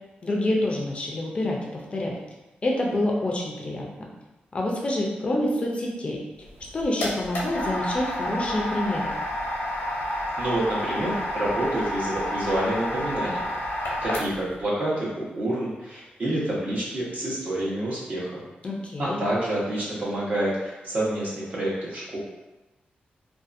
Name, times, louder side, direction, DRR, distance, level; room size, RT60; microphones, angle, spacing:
voice 1, 0.2-2.2 2.6-4.1 4.5-6.2 6.7-9.1 18.6-19.2, left 1 dB, 35° left, -1 dB, 0.4 m, -27 dB
sound 1, 6.5-14.6, left 1 dB, 90° left, 0.7 m, -30 dB
voice 2, 10.4-13.5 14.0-18.4 19.0-22.2, right 1 dB, 50° right, -6 dB, 0.9 m, -28 dB
2.6 x 2.4 x 2.5 m, 1.0 s
wide cardioid pair, 120°, 3 cm